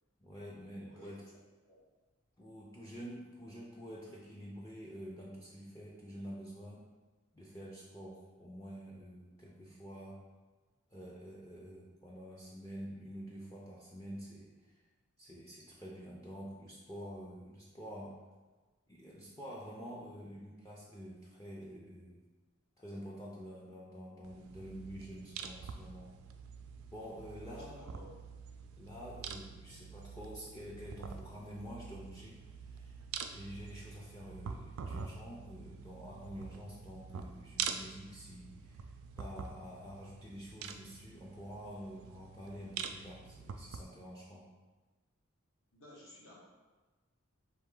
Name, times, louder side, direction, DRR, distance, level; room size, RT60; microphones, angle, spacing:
voice 1, 0.2-1.2 2.4-6.9 7.3-10.2 10.9-14.8 15.2-18.2 18.9-22.2 22.8-26.1 26.9-27.8 28.8-33.0 33.3-38.9 39.2-44.5, equal, 15° left, -5 dB, 0.4 m, -48 dB
voice 2, 0.9-1.2 1.7-1.8 2.8-2.9 27.3-28.1 45.7-46.5, left 1 dB, 70° left, -5 dB, 1.2 m, -55 dB
sound 1, 24.2-43.8, right 6 dB, 75° right, 0.3 m, -46 dB
4.3 x 2.9 x 3.7 m, 1.2 s
head